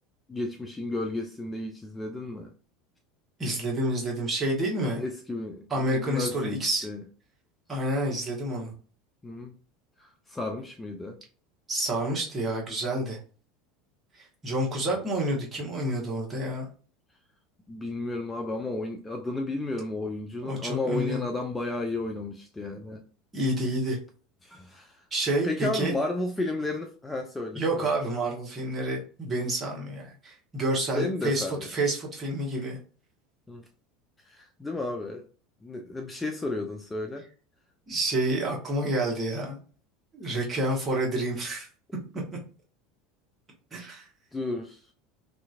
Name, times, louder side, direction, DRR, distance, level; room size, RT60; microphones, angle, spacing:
voice 1, 0.3-2.5 5.0-7.0 9.2-9.5 10.0-11.2 14.9-15.0 17.7-23.0 24.4-25.0 25.4-27.9 30.9-31.7 33.5-33.6 34.2-35.2 35.6-37.3 44.3-44.8, left 2 dB, 15° left, 0.4 m, -33 dB
voice 2, 3.4-5.0 5.7-6.9 7.7-8.7 11.7-13.2 14.2-16.7 20.4-21.2 23.3-24.0 25.1-25.9 27.5-32.8 37.9-39.6 40.1-41.7 43.7-44.1, right 1 dB, 20° right, 1.2 m, -29 dB
2.8 x 2.4 x 2.4 m
figure-of-eight pair, 75°, 0 cm